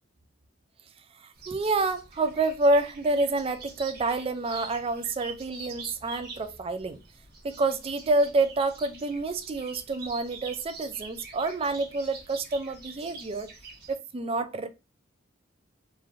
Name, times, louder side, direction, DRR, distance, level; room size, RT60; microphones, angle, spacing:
voice 1, 1.2-7.0 7.4-13.5 13.9-14.7, right 2 dB, 30° right, 0.3 m, -28 dB
sound 1, 1.4-13.9, right 4 dB, 50° right, 1.0 m, -45 dB
3.1 x 2.5 x 2.3 m
head